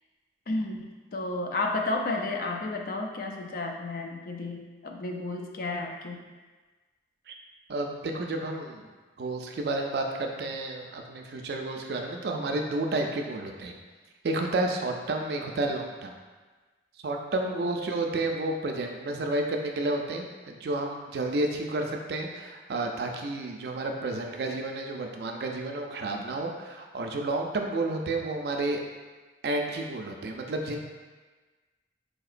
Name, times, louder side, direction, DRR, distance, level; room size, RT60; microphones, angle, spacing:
voice 1, 0.5-6.2 17.4-17.6, left 2 dB, 50° left, 2 dB, 0.3 m, -32 dB
voice 2, 7.7-8.9 9.2-13.7 14.2-16.2 17.0-28.8 29.4-30.8, right 2 dB, 65° right, 2 dB, 0.4 m, -31 dB
4.0 x 2.8 x 2.4 m, 1.3 s
head